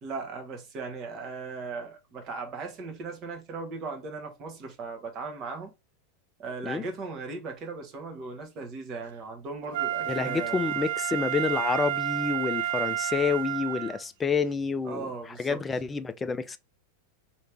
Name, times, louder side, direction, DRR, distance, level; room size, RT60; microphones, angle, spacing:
voice 1, 0.0-5.7 6.4-10.6 14.8-15.6, right 4 dB, 35° right, 1.3 m, -38 dB
Wind instrument woodwind instrument, 9.7-14.0 14.5-14.6, right 12 dB, 50° right, 0.5 m, -30 dB
voice 2, 10.1-15.1 15.4-16.6, left 5 dB, 15° left, 0.4 m, -28 dB
3.2 x 2.9 x 4.5 m
figure-of-eight pair, 90°, 0 cm